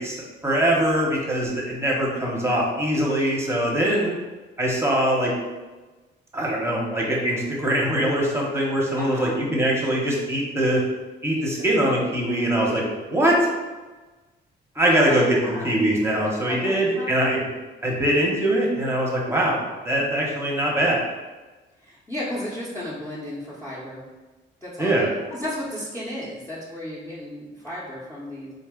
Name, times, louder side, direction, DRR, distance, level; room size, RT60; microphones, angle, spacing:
voice 1, 0.0-4.1 4.6-5.3 6.3-10.8 11.2-12.8 13.1-13.5 14.8-17.4 17.8-19.6 19.8-21.0 24.8-25.1, right 1 dB, 15° right, -3 dB, 1.0 m, -22 dB
voice 2, 9.0-9.4 11.3-11.5 11.8-12.0 12.3-12.5 14.8-17.4 19.3-19.5 21.8-24.1 24.6-28.5, left 1 dB, 10° left, -8 dB, 0.9 m, -34 dB
3.8 x 2.4 x 3.7 m, 1.2 s
cardioid pair, 90°, 20 cm